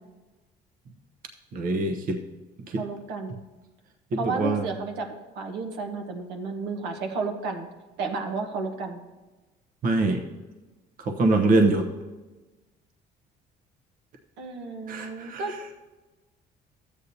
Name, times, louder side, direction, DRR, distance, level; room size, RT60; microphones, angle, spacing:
voice 1, 1.5-2.2 2.7-2.8 4.1-4.7 9.8-10.2 11.1-11.8 14.9-15.4, right 2 dB, 55° right, 4 dB, 1.0 m, -23 dB
voice 2, 2.8-3.4 4.2-7.7 8.0-9.0 14.4-15.7, right 4 dB, 85° right, 2 dB, 1.2 m, -32 dB
13.0 x 8.3 x 2.8 m, 1.2 s
cardioid pair, 110°, 17 cm